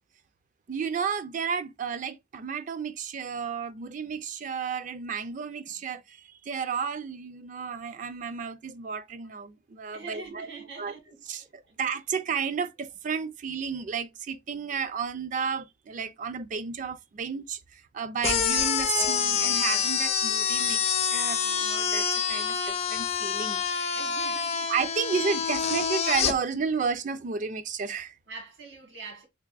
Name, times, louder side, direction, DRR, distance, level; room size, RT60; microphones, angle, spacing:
voice 1, 0.7-10.5 10.8-10.9 11.3-24.0 24.7-28.1, right 6 dB, 45° right, 0.4 m, -32 dB
voice 2, 9.9-11.7 23.9-24.7 28.3-29.3, right 4 dB, 80° right, 1.5 m, -44 dB
sound 1, 18.2-26.3, left 7 dB, 35° left, 0.4 m, -27 dB
3.4 x 3.2 x 2.3 m
head